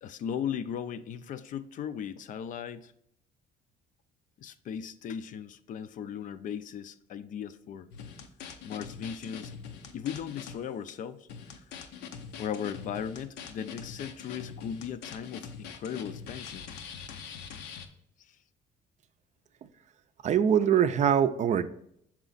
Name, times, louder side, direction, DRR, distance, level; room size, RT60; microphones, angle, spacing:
voice 1, 0.0-2.9 4.4-7.9 8.6-9.5 9.9-11.3 11.6-11.7 12.4-16.7 18.3-18.4, left 8 dB, 50° left, 13 dB, 0.4 m, -37 dB
sound 1, 7.9-10.6 10.9-11.0 11.3-17.9, left 6 dB, 90° left, 0.6 m, -43 dB
voice 2, 20.2-21.7, right 8 dB, 45° right, 11 dB, 0.4 m, -23 dB
6.0 x 4.0 x 3.9 m, 0.71 s
cardioid pair, 110°, 17 cm